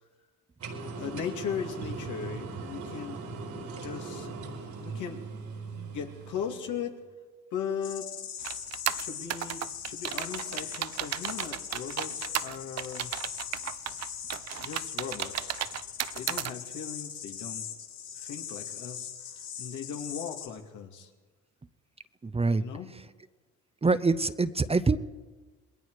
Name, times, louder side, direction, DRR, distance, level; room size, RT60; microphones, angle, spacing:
sound 1, 0.6-6.9, right 3 dB, 85° right, 4.2 m, -39 dB
voice 1, 0.9-3.2 3.8-4.3 4.8-5.3 5.9-7.0 7.5-8.2 9.0-13.1 14.6-15.6 16.1-17.7 18.2-19.1 19.6-21.1 22.6-22.9, left 7 dB, 80° left, 3 dB, 2.4 m, -38 dB
sound 2, 7.8-20.5, left 8 dB, 65° left, 7.1 m, -40 dB
sound 3, 8.4-16.5, right 12 dB, 60° right, 0.6 m, -34 dB
voice 2, 22.2-22.6 22.9-23.0 23.8-25.0, right 3 dB, 20° right, 13 dB, 0.8 m, -25 dB
27.5 x 20.5 x 4.9 m, 1.3 s
cardioid pair, 90°, 30 cm